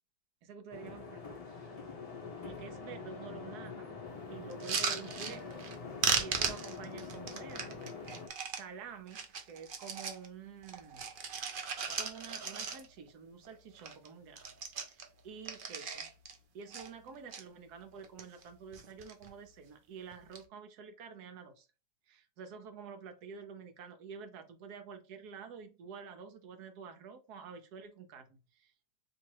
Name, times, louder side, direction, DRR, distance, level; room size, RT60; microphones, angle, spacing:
voice 1, 0.4-1.8 2.4-3.9 4.3-5.4 6.2-7.8 8.5-9.2 9.4-11.1 11.9-16.1 16.5-21.7 22.1-28.7, right 6 dB, 80° right, 7 dB, 1.3 m, -49 dB
sound 1, 0.7-8.3, left 4 dB, 35° left, 0.7 m, -45 dB
sound 2, 4.5-5.8 6.0-8.6 9.1-10.3 10.6-13.1 13.4-13.5 13.8-14.1 14.3-16.4 16.7-17.4 18.0-18.5 18.7-19.3 20.1-20.4, right 6 dB, 55° right, 0.6 m, -37 dB
3.1 x 2.9 x 4.5 m, 0.32 s
omnidirectional pair, 1.7 m